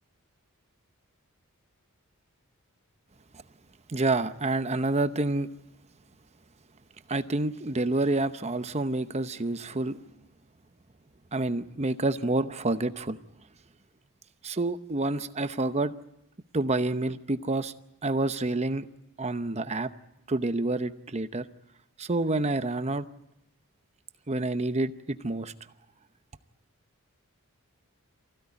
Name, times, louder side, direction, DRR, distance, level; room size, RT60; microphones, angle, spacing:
voice 1, 3.9-5.5 7.1-10.0 11.3-13.2 14.4-15.9 16.5-17.7 18.0-18.8 19.2-19.9 20.3-21.5 22.0-23.1 24.3-25.5, right 2 dB, 30° right, 0.8 m, -28 dB
24.5 x 15.5 x 9.7 m
head